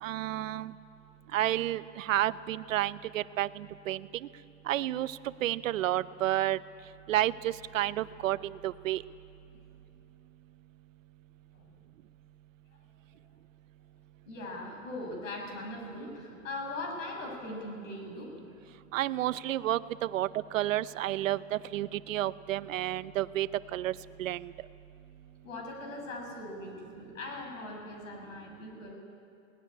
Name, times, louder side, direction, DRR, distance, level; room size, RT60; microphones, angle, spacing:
voice 1, 0.0-0.7 1.3-4.1 4.7-6.6 7.1-9.0 18.9-24.5, right 14 dB, 70° right, 16 dB, 0.8 m, -31 dB
voice 2, 14.3-18.3 25.4-28.9, left 2 dB, 65° left, 2 dB, 7.3 m, -40 dB
19.5 x 18.5 x 9.9 m, 2.6 s
hypercardioid pair, 150°, 41 cm